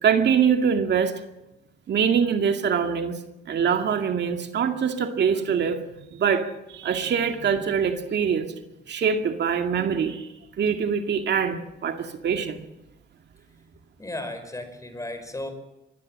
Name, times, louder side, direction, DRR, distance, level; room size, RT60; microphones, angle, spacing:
voice 1, 0.0-1.1 1.9-3.2 3.5-8.5 8.9-10.3 10.6-12.6, right 7 dB, 60° right, 5 dB, 2.3 m, -24 dB
voice 2, 14.0-15.5, left 1 dB, 15° left, 8 dB, 5.6 m, -34 dB
24.5 x 19.5 x 7.6 m, 0.93 s
cardioid pair, 90°, 20 cm